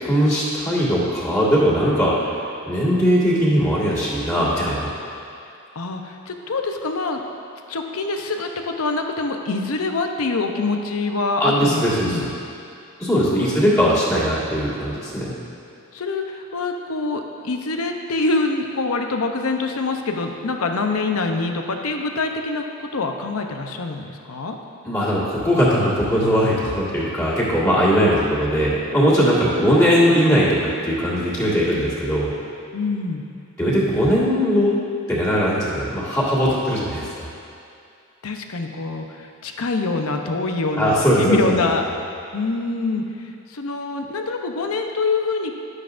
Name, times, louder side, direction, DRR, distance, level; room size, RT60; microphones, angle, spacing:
voice 1, 0.0-2.3 2.7-4.9 11.4-12.3 13.0-15.3 24.9-30.6 30.8-32.3 33.6-34.7 35.1-37.3 40.8-41.6, equal, 15° left, -10 dB, 1.9 m, -19 dB
voice 2, 5.8-7.2 7.7-12.3 13.1-13.5 15.9-24.6 32.7-33.2 38.2-41.8 42.3-43.0 43.5-45.5, left 3 dB, 85° left, 4 dB, 0.8 m, -25 dB
12.0 x 9.6 x 2.6 m, 2.5 s
head